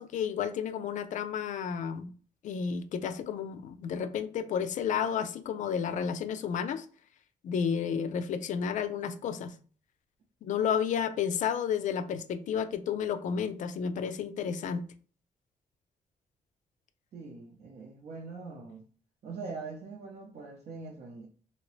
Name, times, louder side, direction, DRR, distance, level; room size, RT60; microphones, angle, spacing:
voice 1, 0.0-2.1 2.4-6.9 7.4-9.5 10.4-14.8, left 7 dB, 65° left, 0.4 m, -31 dB
voice 2, 17.1-18.8 19.2-21.3, right 4 dB, 60° right, 0.6 m, -42 dB
2.9 x 2.8 x 3.0 m
cardioid pair, 135°, 14 cm